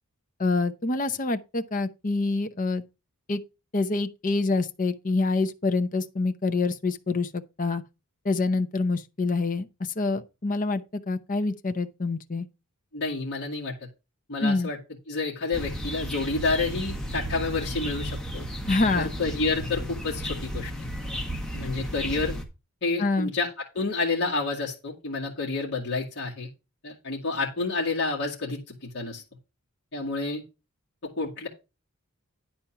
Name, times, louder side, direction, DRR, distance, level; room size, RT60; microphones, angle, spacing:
voice 1, 0.4-2.8 3.3-3.4 3.7-7.8 8.2-9.7 10.0-12.5 14.4-14.7 18.7-19.1 23.0-23.3, left 3 dB, 35° left, 0.7 m, -26 dB
voice 2, 12.9-13.7 14.3-14.8 15.1-18.5 19.0-20.7 21.5-22.3 22.8-23.5 23.7-26.5 26.8-29.2 29.9-30.4 31.2-31.5, left 3 dB, 55° left, 2.1 m, -29 dB
sound 1, 15.5-22.4, equal, 5° left, 1.5 m, -33 dB
10.0 x 4.3 x 5.8 m
head